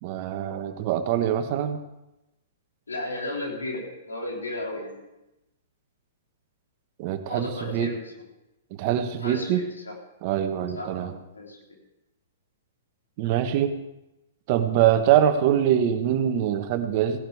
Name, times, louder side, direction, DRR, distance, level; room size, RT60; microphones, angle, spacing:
voice 1, 0.0-1.8 7.0-7.9 8.7-9.7 10.2-11.1 13.2-13.8 14.5-17.2, right 10 dB, 45° right, 8 dB, 1.3 m, -24 dB
voice 2, 2.9-5.0 7.3-7.9 9.2-9.6 10.7-10.9 11.3-11.6, left 2 dB, 90° left, -1 dB, 3.5 m, -33 dB
17.0 x 11.5 x 3.5 m, 0.92 s
hypercardioid pair, 115°, 0 cm